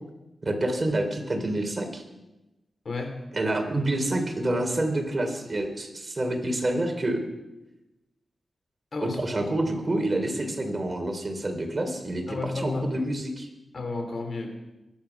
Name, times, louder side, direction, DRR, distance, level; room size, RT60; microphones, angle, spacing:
voice 1, 0.4-2.0 3.3-7.2 9.0-13.5, right 1 dB, 35° right, 4 dB, 3.6 m, -28 dB
voice 2, 2.9-3.2 8.9-9.2 12.3-12.9 13.7-14.5, left 3 dB, 55° left, 5 dB, 3.6 m, -32 dB
22.5 x 10.0 x 6.0 m, 1.0 s
cardioid pair, 60°, 0 cm